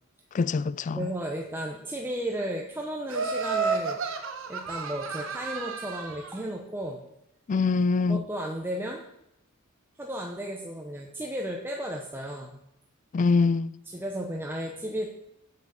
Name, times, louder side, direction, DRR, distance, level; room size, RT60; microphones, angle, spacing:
voice 1, 0.3-1.1 7.5-8.2 13.1-13.8, left 4 dB, 35° left, 0.3 m, -24 dB
voice 2, 0.9-4.0 4.5-7.0 8.1-9.0 10.0-12.6 13.9-15.1, right 1 dB, 10° right, 0.8 m, -34 dB
Laughter, 3.1-6.3, right 4 dB, 65° right, 1.1 m, -31 dB
7.9 x 7.2 x 7.1 m
head